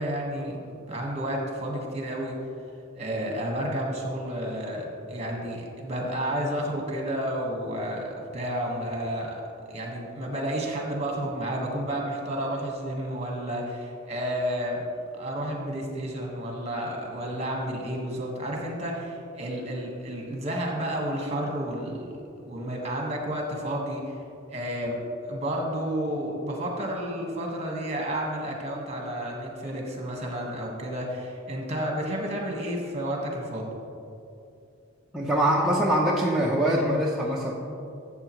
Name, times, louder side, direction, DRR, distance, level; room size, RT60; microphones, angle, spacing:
voice 1, 0.0-2.4 2.9-9.4 9.7-14.8 15.1-24.1 24.5-25.0 25.2-33.7, right 1 dB, 35° right, 0 dB, 1.6 m, -31 dB
voice 2, 35.1-37.5, right 1 dB, ahead, -5 dB, 0.7 m, -23 dB
12.5 x 7.5 x 3.2 m, 2.6 s
head